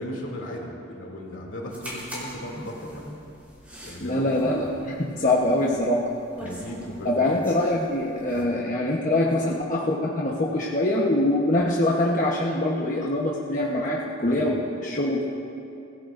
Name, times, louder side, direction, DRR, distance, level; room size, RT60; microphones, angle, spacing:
voice 1, 0.0-3.0 3.8-4.6 5.2-5.3 6.4-7.4 8.3-8.9 9.4-9.5 14.2-14.5, left 1 dB, 70° left, -1 dB, 2.7 m, -37 dB
sound 1, 1.7-8.4, equal, 10° right, 4.0 m, -41 dB
voice 2, 4.0-6.1 7.0-15.2, left 1 dB, 40° left, -4 dB, 1.1 m, -24 dB
24.0 x 17.0 x 2.6 m, 2.6 s
head